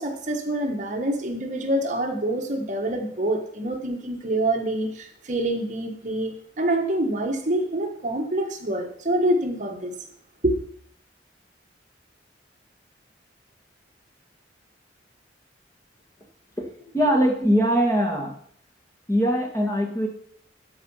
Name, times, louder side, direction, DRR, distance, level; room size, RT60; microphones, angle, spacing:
voice 1, 0.0-9.9 10.4-10.6, right 1 dB, 40° right, 2 dB, 1.4 m, -26 dB
voice 2, 16.6-18.3 19.1-20.1, equal, 15° left, 0 dB, 1.8 m, -22 dB
12.5 x 4.8 x 5.6 m, 0.62 s
head